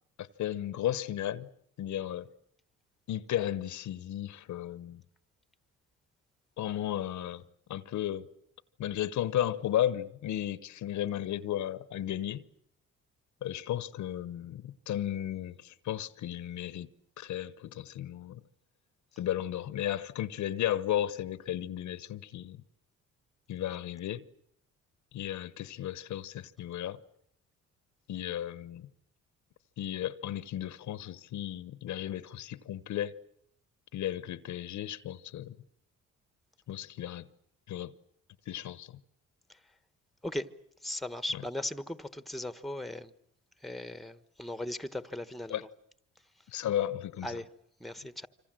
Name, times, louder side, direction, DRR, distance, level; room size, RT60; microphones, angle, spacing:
voice 1, 0.2-1.5 1.8-2.3 3.1-5.0 6.6-7.4 7.7-8.3 8.8-12.4 13.4-16.9 17.2-18.4 19.2-22.6 23.5-24.3 25.1-27.0 28.1-28.9 29.8-33.1 33.9-35.6 36.7-37.3 37.7-37.9 38.5-39.0 41.3-41.4 45.5-45.6 46.5-47.4, left 12 dB, 70° left, 1.0 m, -34 dB
voice 2, 40.8-43.1 43.6-45.7 47.2-47.5 47.8-48.3, left 1 dB, ahead, 1.2 m, -38 dB
26.5 x 25.5 x 7.6 m
cardioid pair, 90°, 30 cm